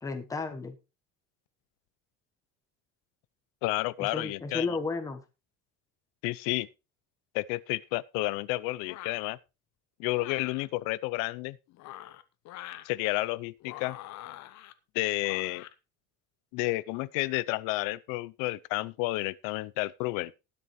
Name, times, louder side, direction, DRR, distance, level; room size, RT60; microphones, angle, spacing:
voice 1, 0.0-0.8 4.0-5.2, left 3 dB, 10° left, 1.1 m, -33 dB
voice 2, 3.6-4.7 6.2-6.7 7.3-9.4 10.0-11.6 12.8-14.0 14.9-15.6 16.5-20.3, left 20 dB, 85° left, 0.6 m, -31 dB
sound 1, 8.9-9.3 10.1-10.7 11.7-12.9 13.6-14.7 15.2-15.7, left 14 dB, 55° left, 1.0 m, -45 dB
20.0 x 6.9 x 3.1 m
cardioid pair, 150°, 32 cm